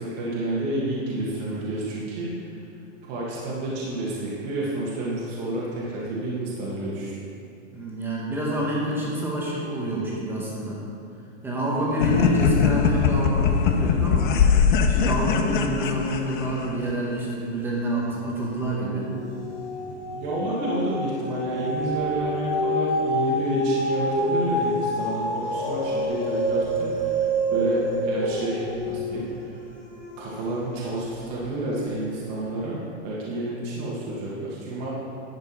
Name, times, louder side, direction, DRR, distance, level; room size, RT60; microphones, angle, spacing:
voice 1, 0.0-2.6 3.1-7.1 20.1-29.5 30.2-32.8 33.0-34.9, right 1 dB, 35° right, -6 dB, 1.5 m, -30 dB
voice 2, 7.7-10.8 11.4-14.4 14.9-19.1, right 1 dB, 5° right, -4 dB, 1.0 m, -27 dB
sound 1, 12.0-16.8, left 6 dB, 45° left, 0.6 m, -21 dB
sound 2, 17.9-18.4 18.8-31.2 31.8-31.9, right 1 dB, 20° left, 2.2 m, -27 dB
11.0 x 5.9 x 4.4 m, 2.5 s
supercardioid pair, 170°, 37 cm